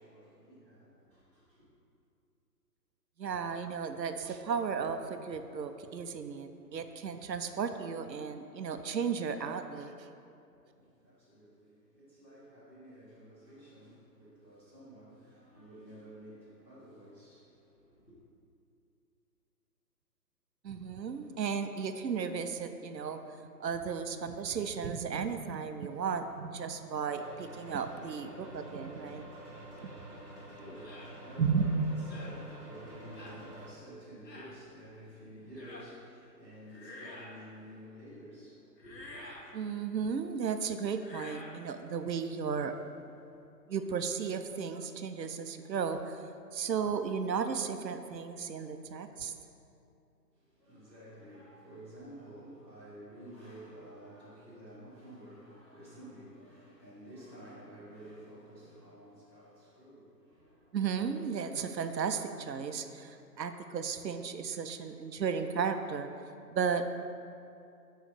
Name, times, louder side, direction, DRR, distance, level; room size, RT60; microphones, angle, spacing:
voice 1, 0.0-1.6 10.6-18.2 29.7-39.3 50.3-60.8, equal, 10° left, -16 dB, 0.6 m, -51 dB
voice 2, 3.2-10.1 20.6-23.2 23.6-29.2 29.8-29.9 31.4-31.7 39.5-42.7 43.7-46.2 46.5-49.3 60.7-66.1 66.5-66.8, right 6 dB, 85° right, 8 dB, 0.6 m, -34 dB
sound 1, 27.1-33.7, right 1 dB, 20° right, 1.2 m, -48 dB
sound 2, 30.8-31.1 32.1-32.4 33.2-33.4 34.2-34.6 35.6-35.9 36.7-37.4 38.8-39.5 40.9-41.6, left 2 dB, 80° left, 1.1 m, -48 dB
7.0 x 3.2 x 5.1 m, 2.6 s
figure-of-eight pair, 150°, 49 cm